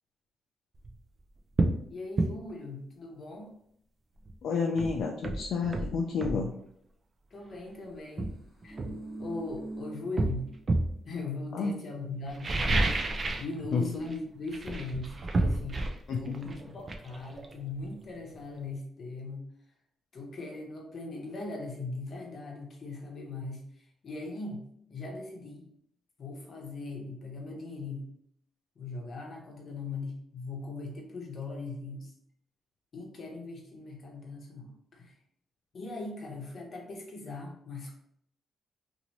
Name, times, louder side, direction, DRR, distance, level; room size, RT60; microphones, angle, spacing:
sound 1, 0.8-1.0 1.6-1.8 2.2-2.4 4.3-4.4 4.8-6.4 7.5-7.7 8.2-9.6 10.2-11.0 12.3-13.5 13.8-14.2 14.5-18.1 18.3-18.4, right 2 dB, 35° right, 0.4 m, -30 dB
voice 1, 1.9-3.5 7.3-8.3 8.6-8.8 9.2-10.5 11.1-12.8 13.3-19.4 20.1-25.7 26.2-28.1 28.8-32.1 32.9-35.1 35.7-38.0, left 3 dB, 50° left, 1 dB, 0.8 m, -39 dB
voice 2, 4.4-6.5 11.5-11.7 13.7-13.8 16.1-16.4, left 5 dB, 70° left, 0 dB, 0.3 m, -30 dB
sound 2, 8.3-11.0 11.3-11.4, right 2 dB, 10° right, 1.1 m, -43 dB
2.8 x 2.6 x 3.0 m, 0.70 s
cardioid pair, 110°, 0 cm